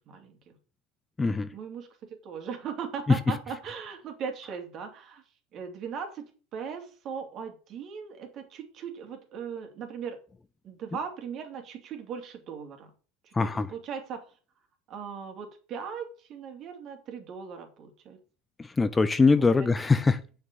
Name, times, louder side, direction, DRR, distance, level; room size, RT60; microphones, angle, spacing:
voice 1, 0.1-0.5 1.5-5.2 5.5-10.2 10.6-12.9 13.2-14.2 14.9-18.2 19.4-19.7, right 6 dB, 50° right, 4 dB, 2.9 m, -39 dB
voice 2, 1.2-1.5 13.3-13.7 18.8-20.2, left 4 dB, 20° left, 13 dB, 0.7 m, -22 dB
8.0 x 6.4 x 6.9 m, 0.39 s
hypercardioid pair, 85°, 0 cm